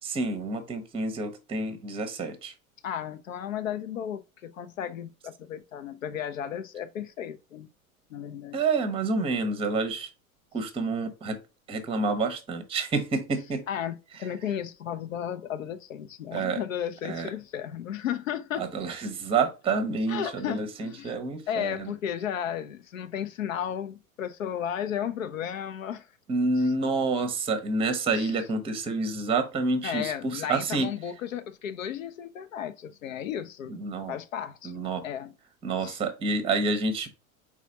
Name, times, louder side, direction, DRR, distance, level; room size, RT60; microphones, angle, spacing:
voice 1, 0.0-2.5 8.5-10.1 10.5-11.4 11.7-13.6 16.3-16.6 17.0-17.3 18.6-21.9 26.3-30.9 33.7-34.2 34.6-35.0 35.6-37.1, right 3 dB, 15° right, 0.8 m, -28 dB
voice 2, 2.8-7.7 8.1-8.6 13.7-18.7 20.1-21.2 21.5-26.1 28.1-28.3 29.8-33.7 34.1-35.3 35.8-36.0, left 9 dB, 65° left, 0.7 m, -34 dB
4.8 x 4.1 x 2.7 m
figure-of-eight pair, 90°, 43 cm